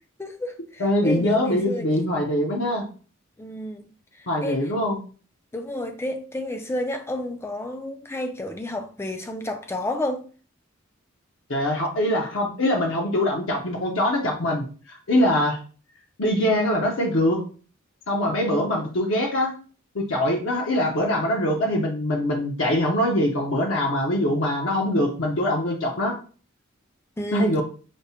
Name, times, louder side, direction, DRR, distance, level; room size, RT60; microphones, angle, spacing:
voice 1, 0.2-2.0 3.4-3.9 4.2-4.7 5.5-10.3 27.2-27.6, left 1 dB, 10° left, 0.3 m, -31 dB
voice 2, 0.8-2.9 4.3-5.0 11.5-15.6 16.2-17.4 18.1-19.5 19.9-26.1 27.3-27.6, left 1 dB, 70° left, 0.7 m, -23 dB
5.1 x 2.0 x 2.8 m
head